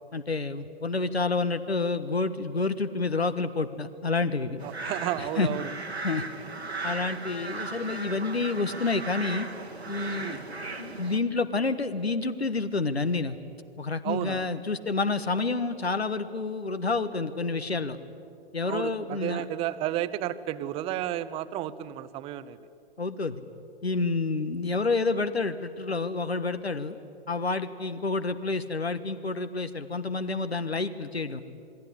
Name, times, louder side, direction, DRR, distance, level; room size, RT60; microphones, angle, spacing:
voice 1, 0.1-4.6 5.2-5.5 6.0-6.2 6.8-9.5 9.9-10.4 10.8-13.4 13.8-18.0 18.5-19.4 23.0-23.4 23.8-27.0 27.3-31.4, left 3 dB, 80° left, 12 dB, 1.4 m, -29 dB
voice 2, 4.6-5.7 10.2-10.4 14.0-14.4 18.6-22.6, right 12 dB, 20° right, 15 dB, 0.7 m, -32 dB
sound 1, 4.6-11.2, right 3 dB, 85° right, 2.4 m, -37 dB
27.5 x 20.0 x 10.0 m, 2.6 s
figure-of-eight pair, 120°, 31 cm